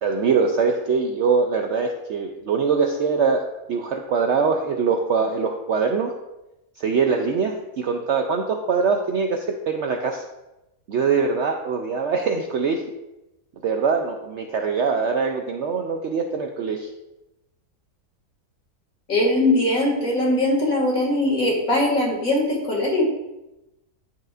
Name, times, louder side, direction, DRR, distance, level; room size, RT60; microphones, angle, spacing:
voice 1, 0.0-6.2 6.8-10.2 10.9-12.9 13.6-16.9, right 5 dB, 70° right, 3 dB, 0.7 m, -23 dB
voice 2, 19.1-23.0, left 1 dB, 60° left, -3 dB, 2.6 m, -21 dB
10.5 x 6.6 x 2.5 m, 0.96 s
omnidirectional pair, 1.7 m